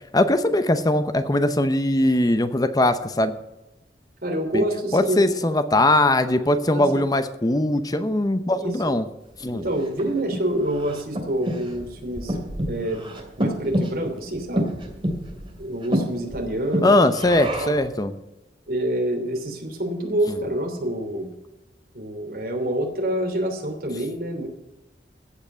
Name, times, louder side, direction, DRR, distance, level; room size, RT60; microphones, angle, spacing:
voice 1, 0.0-3.3 4.5-4.6 4.9-9.0 9.4-9.6 16.8-18.1, left 1 dB, 20° left, 10 dB, 0.7 m, -20 dB
voice 2, 4.2-5.3 6.7-7.0 8.6-8.9 9.5-12.4 12.7-13.1 13.4-14.7 15.6-16.9 17.6-17.8 18.7-21.3 21.9-24.5, right 1 dB, 55° right, 2 dB, 3.1 m, -27 dB
Breathing, 9.4-17.9, equal, 30° right, 2.7 m, -29 dB
15.5 x 5.9 x 8.0 m, 0.95 s
head